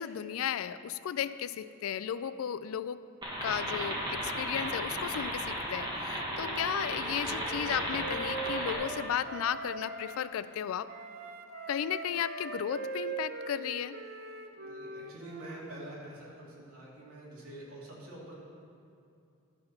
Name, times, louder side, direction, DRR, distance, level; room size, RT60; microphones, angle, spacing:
voice 1, 0.0-3.0 3.4-10.9 11.7-14.0, left 9 dB, 75° left, 15 dB, 0.3 m, -34 dB
sound 1, 3.2-8.7, equal, 20° right, 1.8 m, -35 dB
Wind instrument woodwind instrument, 5.7-10.3 10.9-15.7, right 4 dB, 50° right, 0.6 m, -42 dB
voice 2, 14.6-18.3, right 1 dB, 90° right, -4 dB, 2.3 m, -46 dB
11.0 x 5.8 x 5.6 m, 2.5 s
head